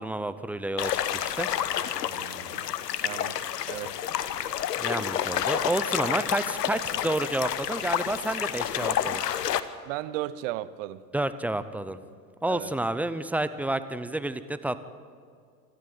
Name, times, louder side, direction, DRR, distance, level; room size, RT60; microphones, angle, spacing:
voice 1, 0.0-1.5 4.8-9.2 11.1-12.0 12.4-14.8, right 1 dB, 5° right, 12 dB, 0.6 m, -30 dB
sound 1, 0.8-9.6, left 10 dB, 80° left, 1.2 m, -29 dB
voice 2, 2.1-2.7 3.0-3.9 9.9-11.0 12.5-12.7, right 15 dB, 55° right, 16 dB, 1.1 m, -36 dB
26.0 x 13.5 x 7.9 m, 2.2 s
hypercardioid pair, 110°, 48 cm